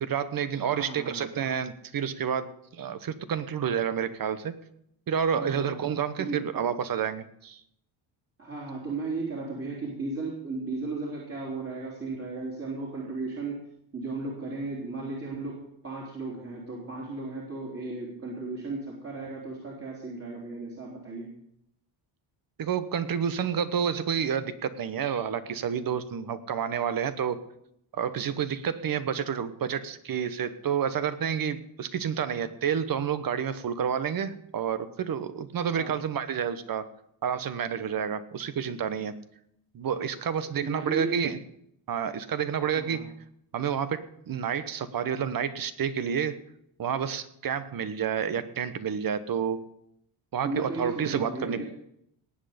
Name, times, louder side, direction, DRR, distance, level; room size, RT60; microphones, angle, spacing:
voice 1, 0.0-4.6 5.1-7.6 22.6-27.4 27.9-36.9 37.2-39.1 39.7-41.4 41.9-43.1 43.5-46.4 46.8-49.6 50.3-51.6, right 7 dB, 45° right, 12 dB, 1.1 m, -29 dB
voice 2, 0.7-1.2 5.3-5.7 6.2-6.4 8.4-13.7 13.9-21.3 35.8-36.0 40.6-41.2 42.7-43.0 50.4-51.6, right 3 dB, 30° right, -4 dB, 3.5 m, -35 dB
19.0 x 8.1 x 5.1 m, 0.73 s
cardioid pair, 115°, 49 cm